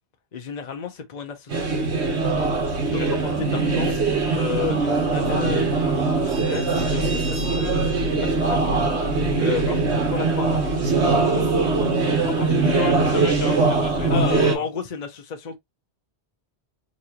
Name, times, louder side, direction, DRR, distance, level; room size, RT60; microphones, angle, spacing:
voice 1, 0.3-1.8 2.3-2.5 2.9-5.7 6.1-8.8 9.3-10.8 14.1-15.6, left 6 dB, 45° left, 0.8 m, -33 dB
sound 1, 1.5-14.6, right 3 dB, 90° right, 1.5 m, -22 dB
voice 2, 12.1-14.7, left 5 dB, 70° left, 1.3 m, -32 dB
4.1 x 3.0 x 2.9 m
omnidirectional pair, 1.1 m